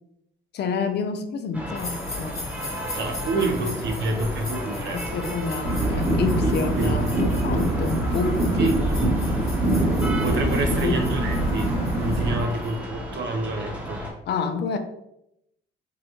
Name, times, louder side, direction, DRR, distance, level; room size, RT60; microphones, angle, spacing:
voice 1, 0.5-2.5 3.4-3.8 4.9-8.8 10.8-11.0 11.3-11.4 14.3-14.8, left 5 dB, 60° left, 8 dB, 0.5 m, -29 dB
sound 1, 1.5-14.1, equal, 5° right, 0.9 m, -34 dB
sound 2, 1.7-12.7, left 1 dB, 15° left, 1.1 m, -40 dB
voice 2, 3.0-5.0 6.4-6.5 6.8-7.2 8.2-8.8 10.2-14.0, right 2 dB, 65° right, 4 dB, 0.7 m, -28 dB
sound 3, 5.6-12.4, right 1 dB, 30° right, 1.0 m, -24 dB
3.8 x 2.1 x 2.9 m, 0.81 s
cardioid pair, 90°, 20 cm